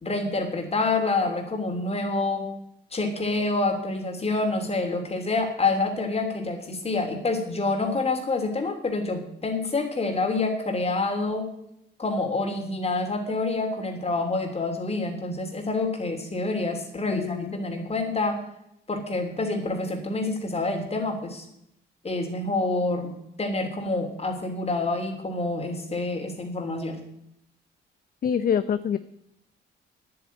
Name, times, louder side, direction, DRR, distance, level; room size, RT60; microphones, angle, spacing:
voice 1, 0.0-2.4 2.9-11.5 12.0-18.4 18.9-21.4 22.0-27.0, left 3 dB, 30° left, 5 dB, 3.1 m, -27 dB
voice 2, 17.1-17.5 28.2-29.0, left 8 dB, 45° left, 13 dB, 0.6 m, -25 dB
9.9 x 8.7 x 9.3 m, 0.77 s
cardioid pair, 90°, 20 cm